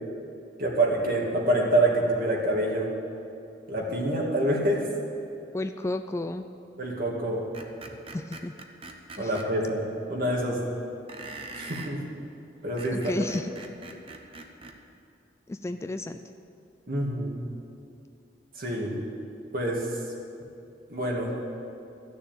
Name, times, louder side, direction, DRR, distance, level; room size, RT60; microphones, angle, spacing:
voice 1, 0.6-2.9 3.7-4.8 6.8-7.4 9.2-9.8 10.1-10.6 11.5-12.0 12.6-13.0 16.9-17.3 18.6-18.9 19.5-19.9 20.9-21.3, right 1 dB, 50° right, -1 dB, 2.3 m, -26 dB
voice 2, 5.5-6.5 8.1-8.5 9.2-9.4 12.9-13.5 15.5-16.2, left 2 dB, 15° left, 8 dB, 0.3 m, -32 dB
Screech, 7.5-9.5 11.1-12.0 12.6-14.8, right 3 dB, 30° right, 0.9 m, -42 dB
14.0 x 6.8 x 9.1 m, 2.6 s
head